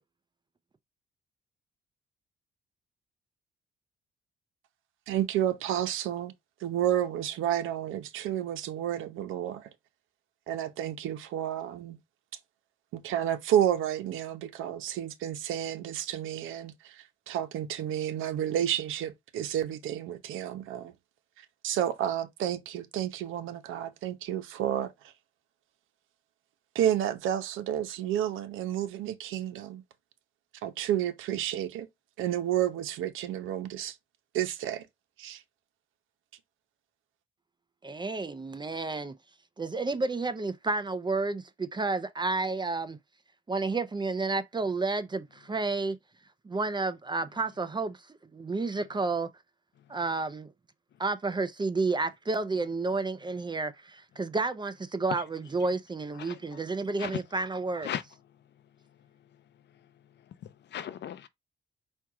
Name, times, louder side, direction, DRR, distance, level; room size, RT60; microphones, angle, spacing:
voice 1, 5.1-6.3 6.6-9.7 10.5-12.0 12.9-20.9 21.6-24.9 26.7-29.8 30.6-31.9 32.2-34.0 34.3-34.9 35.2-35.4, right 11 dB, 90° right, 0.8 m, -31 dB
voice 2, 37.8-39.1 39.6-43.0 43.5-46.0 46.5-48.0 48.3-49.3 49.9-50.5 51.0-57.9, right 3 dB, 20° right, 0.6 m, -31 dB
voice 3, 56.1-56.6 57.0-57.2 57.8-58.0 60.4-61.3, left 10 dB, 60° left, 0.5 m, -37 dB
4.5 x 2.4 x 4.7 m
cardioid pair, 90°, 20 cm